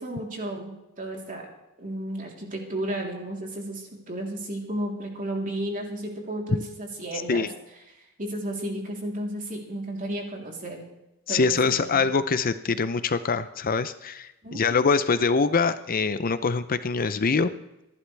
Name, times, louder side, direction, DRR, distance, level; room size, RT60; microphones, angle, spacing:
voice 1, 0.0-1.5 1.8-7.5 8.2-10.8 11.3-12.0 14.4-14.6, right 1 dB, 40° right, 0 dB, 3.4 m, -33 dB
voice 2, 11.3-17.5, left 4 dB, 40° left, 12 dB, 0.6 m, -24 dB
26.5 x 11.5 x 3.4 m, 0.92 s
head